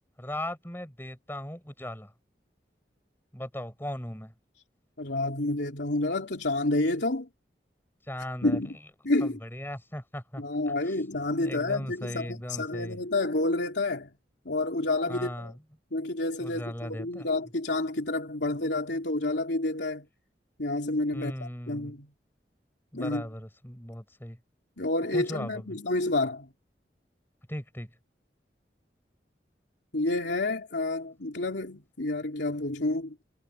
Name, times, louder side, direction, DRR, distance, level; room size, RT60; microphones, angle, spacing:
voice 1, 0.2-2.1 3.3-4.3 8.1-8.6 9.2-11.0 11.4-13.0 15.1-15.6 16.4-17.3 21.1-21.9 22.9-24.4 25.1-25.8 27.5-27.9, left 1 dB, 15° left, 6.4 m, -38 dB
voice 2, 5.0-7.3 8.4-8.8 9.0-9.4 10.4-14.1 14.4-15.6 15.9-20.0 20.6-22.1 22.9-23.2 24.8-26.5 29.9-33.3, left 2 dB, 85° left, 3.0 m, -29 dB
head